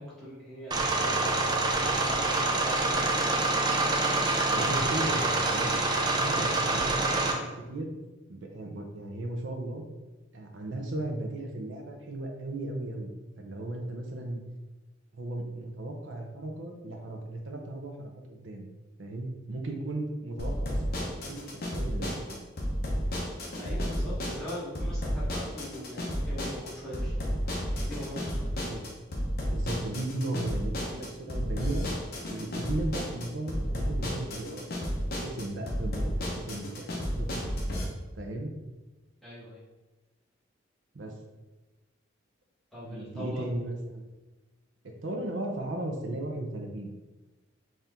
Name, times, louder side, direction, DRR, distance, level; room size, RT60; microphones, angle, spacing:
voice 1, 0.0-3.2 23.6-27.4 27.7-28.7 39.2-39.6 42.7-43.5, left 1 dB, ahead, -10 dB, 1.4 m, -42 dB
sound 1, 0.7-7.3, right 2 dB, 20° right, 0.4 m, -26 dB
voice 2, 4.5-7.9 8.3-9.8 10.3-14.4 15.1-18.7 19.0-22.4 28.6-28.8 29.4-31.9 32.3-35.0 35.2-37.4 38.2-38.5 40.9-41.1 42.8-44.0 44.8-46.9, right 1 dB, 70° right, 3 dB, 0.6 m, -36 dB
sound 2, 20.4-37.8, equal, 50° left, 0.8 m, -32 dB
4.2 x 2.6 x 3.5 m, 1.2 s
head